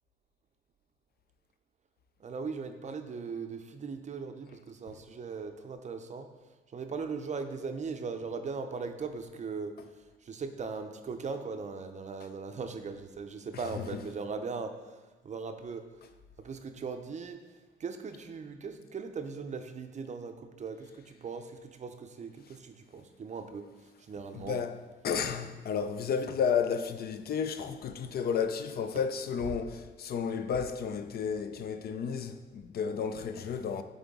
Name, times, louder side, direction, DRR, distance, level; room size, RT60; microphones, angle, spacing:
voice 1, 2.2-6.3 6.7-9.7 10.2-14.7 15.2-15.9 16.4-17.4 17.8-23.6 24.1-24.6, right 5 dB, 35° right, 0.5 m, -39 dB
voice 2, 24.3-24.8 25.0-33.8, left 6 dB, 50° left, 0.4 m, -32 dB
7.6 x 3.6 x 3.6 m
cardioid pair, 90°, 20 cm